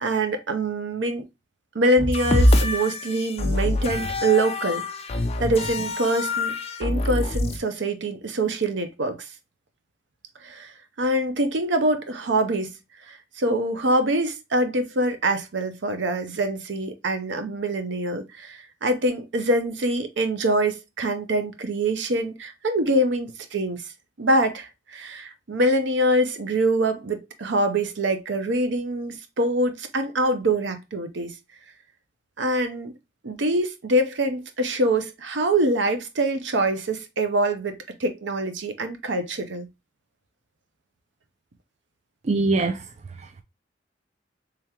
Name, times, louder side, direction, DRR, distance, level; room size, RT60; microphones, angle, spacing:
voice 1, 0.0-1.2 1.7-4.9 5.4-9.2 10.4-10.7 11.0-12.7 13.1-23.8 24.2-31.3 32.4-32.9 33.2-39.7, right 1 dB, 70° right, 0.7 m, -24 dB
sound 1, 2.0-7.6, left 1 dB, 35° left, 0.5 m, -24 dB
voice 2, 42.2-42.8 43.2-43.4, right 3 dB, 35° right, 0.4 m, -23 dB
3.5 x 3.4 x 2.9 m
head